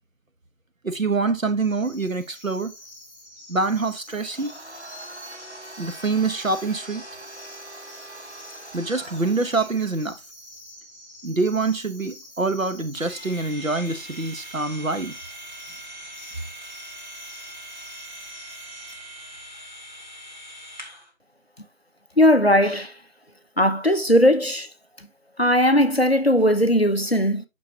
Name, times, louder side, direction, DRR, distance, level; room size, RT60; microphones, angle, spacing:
voice 1, 0.8-2.7 3.5-4.5 5.8-7.0 8.7-10.2 11.2-15.1, right 3 dB, 75° right, 1.4 m, -25 dB
sound 1, 1.6-18.9, left 1 dB, 25° left, 4.1 m, -47 dB
Domestic sounds home sounds, 4.1-10.0, right 1 dB, 55° right, 1.4 m, -42 dB
sound 2, 12.9-21.1, right 1 dB, 35° right, 1.5 m, -42 dB
voice 2, 22.2-23.0 23.6-24.7 25.4-27.4, equal, 50° left, 0.7 m, -18 dB
8.8 x 6.2 x 2.8 m
figure-of-eight pair, 180°, 40 cm